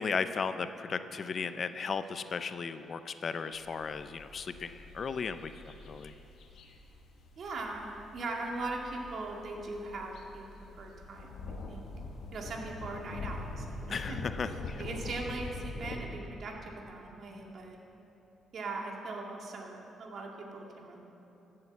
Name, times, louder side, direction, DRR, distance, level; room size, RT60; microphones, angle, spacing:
voice 1, 0.0-5.5 5.9-6.1 13.9-14.8, left 5 dB, 45° left, 11 dB, 0.5 m, -35 dB
sound 1, 3.5-16.0, left 3 dB, 75° left, 1.3 m, -44 dB
voice 2, 7.4-10.5 10.8-11.9 12.3-17.8 18.5-21.0, right 2 dB, 55° right, 0 dB, 2.0 m, -40 dB
14.5 x 7.6 x 7.2 m, 3.0 s
cardioid pair, 90°, 0 cm